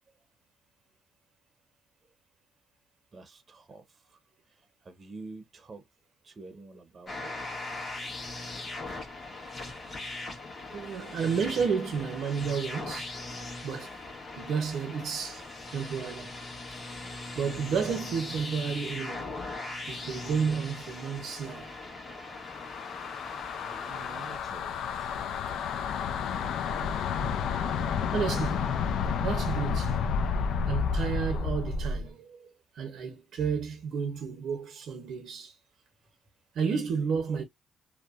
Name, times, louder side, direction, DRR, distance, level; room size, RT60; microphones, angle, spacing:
voice 1, 3.1-4.2 4.8-5.8 6.2-7.3 15.3-15.4 23.6-25.1, right 3 dB, 40° right, 0.6 m, -48 dB
sound 1, 7.1-24.4, left 2 dB, 40° left, 1.2 m, -40 dB
voice 2, 10.7-13.2 13.6-13.9 14.4-15.4 15.7-16.4 17.4-19.4 19.9-21.7 28.1-28.7 29.2-30.0 30.7-32.5 32.8-35.6 36.5-37.4, right 6 dB, 70° right, 0.7 m, -31 dB
sound 2, 22.3-32.1, left 6 dB, 80° left, 0.4 m, -31 dB
2.7 x 2.1 x 2.4 m
cardioid pair, 90°, 0 cm